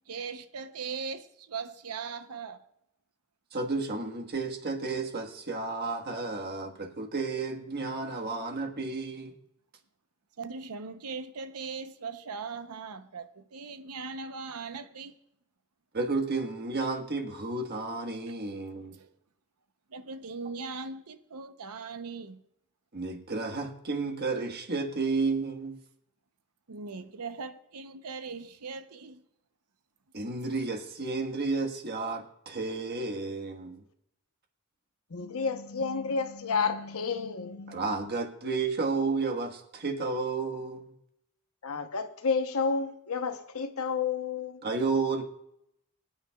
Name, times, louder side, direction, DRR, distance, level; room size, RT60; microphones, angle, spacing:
voice 1, 0.1-2.6 8.1-8.3 10.4-15.2 18.9-19.1 19.9-22.4 26.7-29.2, right 5 dB, 90° right, 0.8 m, -39 dB
voice 2, 3.5-9.3 15.9-18.9 22.9-25.8 30.1-33.8 37.7-40.9 44.6-45.2, right 3 dB, 50° right, 1.5 m, -32 dB
voice 3, 35.1-38.1 41.6-44.6, left 5 dB, 70° left, 0.9 m, -31 dB
25.0 x 9.0 x 2.3 m
head